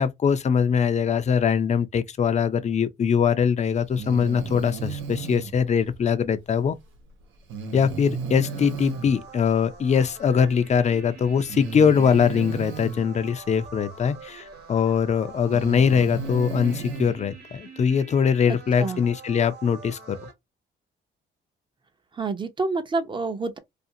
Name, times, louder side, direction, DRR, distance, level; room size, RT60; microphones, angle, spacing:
voice 1, 0.0-6.7 7.7-20.2, left 7 dB, 35° left, 0.5 m, -22 dB
Breathing, 3.9-5.5 7.5-9.1 10.5-10.6 11.5-13.0 14.6-14.7 15.3-17.1, right 4 dB, 85° right, 0.9 m, -34 dB
sound 1, 8.4-20.3, right 4 dB, 55° right, 1.0 m, -45 dB
voice 2, 18.5-19.0 22.2-23.6, right 3 dB, 25° right, 0.6 m, -28 dB
2.5 x 2.4 x 2.7 m
cardioid pair, 90°, 20 cm